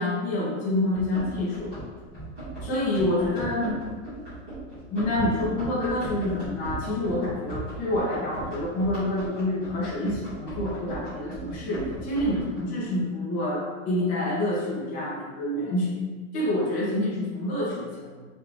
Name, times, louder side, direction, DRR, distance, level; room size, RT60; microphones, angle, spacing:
voice 1, 0.0-1.7 2.6-3.8 4.9-16.0 16.3-18.3, left 1 dB, 20° left, -8 dB, 1.1 m, -27 dB
Run, 0.9-12.6, right 1 dB, 5° right, 0.3 m, -37 dB
4.5 x 2.9 x 3.5 m, 1.4 s
supercardioid pair, 170°, 41 cm